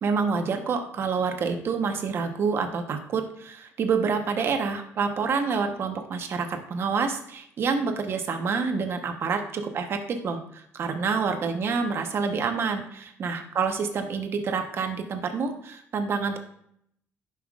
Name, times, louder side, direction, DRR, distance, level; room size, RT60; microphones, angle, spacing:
voice 1, 0.0-16.4, right 5 dB, 50° right, 6 dB, 1.0 m, -27 dB
11.0 x 5.7 x 2.4 m, 0.70 s
cardioid pair, 135°, 5 cm